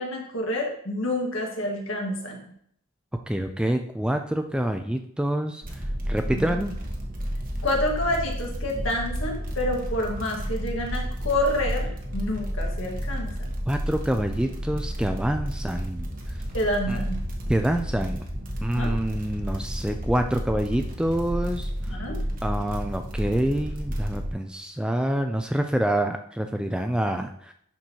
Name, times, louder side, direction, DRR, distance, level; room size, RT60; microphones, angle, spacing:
voice 1, 0.0-2.4 6.3-6.5 7.6-13.3 16.5-17.2 18.7-18.9 21.9-22.2, left 1 dB, 70° left, 0 dB, 1.7 m, -28 dB
voice 2, 3.3-5.6 6.1-6.7 13.7-16.1 16.9-17.1 17.5-18.2 18.6-21.7 22.4-27.5, right 1 dB, 5° right, 5 dB, 0.3 m, -26 dB
sound 1, 5.6-24.3, equal, 40° right, 1.1 m, -31 dB
11.5 x 4.5 x 2.9 m, 0.67 s
head